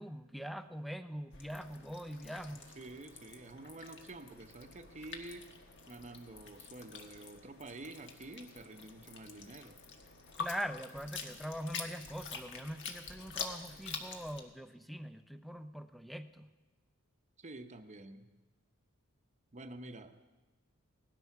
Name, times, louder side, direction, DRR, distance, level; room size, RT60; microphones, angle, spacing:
voice 1, 0.0-2.7 10.4-16.5, equal, ahead, 10 dB, 0.5 m, -43 dB
sound 1, 1.3-14.4, left 5 dB, 55° left, 1.5 m, -47 dB
voice 2, 2.5-5.5 5.9-9.8 17.4-18.3 19.5-20.2, right 2 dB, 35° right, 8 dB, 0.9 m, -49 dB
18.5 x 12.5 x 5.9 m, 1.2 s
head